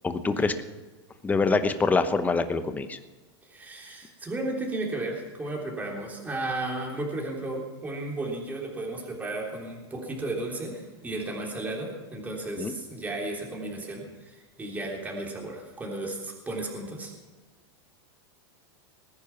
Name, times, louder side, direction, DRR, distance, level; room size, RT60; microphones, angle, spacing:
voice 1, 0.0-0.5 1.2-3.0 12.6-12.7, left 4 dB, 10° left, 10 dB, 0.9 m, -25 dB
voice 2, 3.5-17.1, right 2 dB, 10° right, -1 dB, 3.4 m, -34 dB
20.0 x 10.0 x 5.8 m, 1.3 s
supercardioid pair, 135°, 14 cm